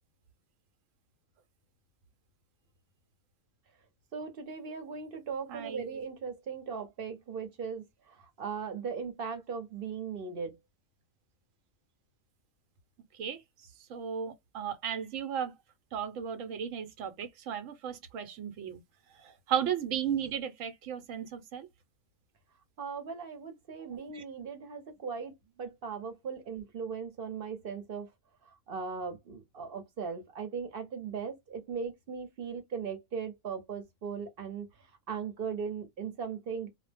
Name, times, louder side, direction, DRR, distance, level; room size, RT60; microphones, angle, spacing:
voice 1, 4.1-7.9 8.4-10.6 22.8-28.1 28.7-34.7 35.1-36.7, right 6 dB, 50° right, 0.9 m, -38 dB
voice 2, 5.5-5.8 13.2-13.4 13.9-15.5 15.9-18.8 19.2-21.7 24.1-24.2, right 8 dB, 85° right, 1.1 m, -35 dB
2.3 x 2.1 x 3.3 m
omnidirectional pair, 1.3 m